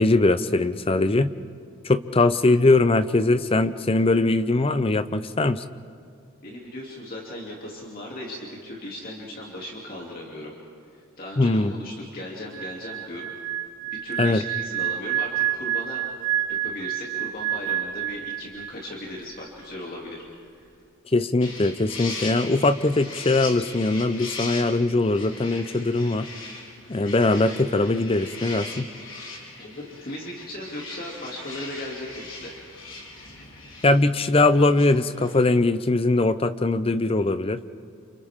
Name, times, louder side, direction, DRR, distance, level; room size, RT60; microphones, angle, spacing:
voice 1, 0.0-1.3 1.8-5.6 11.4-11.7 14.2-14.4 21.1-26.3 26.9-28.8 33.8-37.7, left 2 dB, 25° left, 12 dB, 0.6 m, -21 dB
voice 2, 6.4-10.5 10.9-13.3 13.9-16.0 16.6-20.2 20.5-20.7 29.6-32.5, left 1 dB, 45° left, -3 dB, 2.8 m, -37 dB
sound 1, 12.5-18.9 19.1-19.4, right 11 dB, 55° right, 1.3 m, -29 dB
sound 2, 21.4-35.4, left 3 dB, 65° left, 4.1 m, -39 dB
29.0 x 29.0 x 3.7 m, 2.4 s
head